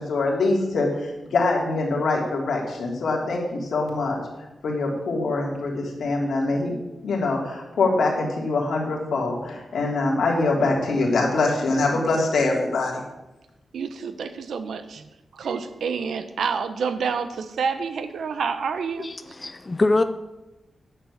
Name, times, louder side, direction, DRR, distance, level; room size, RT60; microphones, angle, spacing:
voice 1, 0.0-4.2 4.6-6.7 7.0-13.0, left 3 dB, 80° left, -1 dB, 3.1 m, -24 dB
voice 2, 13.7-19.1, right 6 dB, 90° right, 10 dB, 0.9 m, -28 dB
voice 3, 19.0-20.0, left 2 dB, 20° left, 9 dB, 0.4 m, -23 dB
9.9 x 7.1 x 8.2 m, 1.0 s
wide cardioid pair, 175°, 0 cm